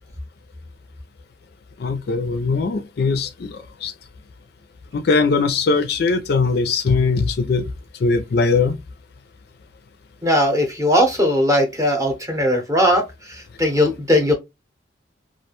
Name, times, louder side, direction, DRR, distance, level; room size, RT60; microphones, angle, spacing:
voice 1, 1.8-3.9 4.9-7.7 8.0-8.8, left 4 dB, 55° left, 0.4 m, -20 dB
voice 2, 10.2-13.0 13.3-14.3, equal, 15° right, 0.7 m, -18 dB
2.4 x 2.2 x 2.9 m
head